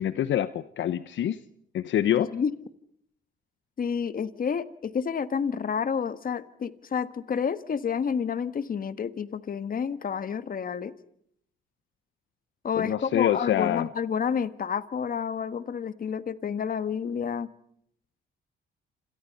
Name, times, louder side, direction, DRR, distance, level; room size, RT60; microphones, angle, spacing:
voice 1, 0.0-1.4 1.7-2.3 12.8-13.9, left 11 dB, 70° left, 0.9 m, -26 dB
voice 2, 2.0-2.5 3.8-10.9 12.6-17.5, left 7 dB, 45° left, 1.6 m, -29 dB
28.0 x 27.0 x 5.5 m
cardioid pair, 90°, 20 cm